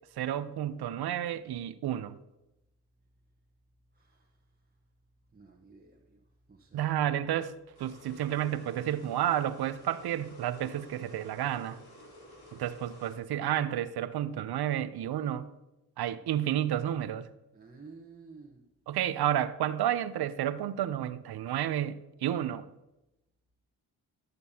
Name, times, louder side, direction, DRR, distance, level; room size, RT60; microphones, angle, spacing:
voice 1, 0.2-2.1 6.7-7.5 7.8-11.8 12.5-15.5 16.0-17.3 18.9-22.6, right 11 dB, 70° right, 0.7 m, -31 dB
voice 2, 3.9-4.3 5.3-6.2 6.5-6.8 17.5-18.6, right 4 dB, 25° right, 1.1 m, -52 dB
sound 1, 7.7-13.2, equal, 65° left, 3.2 m, -52 dB
13.5 x 6.7 x 2.8 m
cardioid pair, 65°, 40 cm